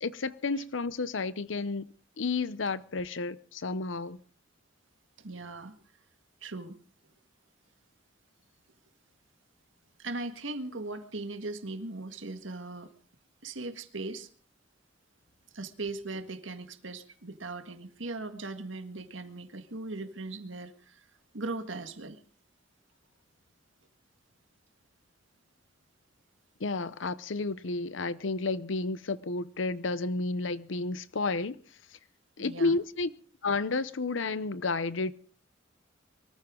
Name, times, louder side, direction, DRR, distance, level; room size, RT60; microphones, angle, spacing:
voice 1, 0.0-1.9 2.2-4.2 26.6-31.6 32.4-33.1 33.4-35.1, left 3 dB, 80° left, 0.8 m, -31 dB
voice 2, 5.2-5.8 6.4-6.8 10.0-12.9 13.4-14.3 15.5-21.0 21.3-22.2 32.4-32.8, right 2 dB, 85° right, 1.8 m, -39 dB
23.5 x 14.5 x 3.8 m
head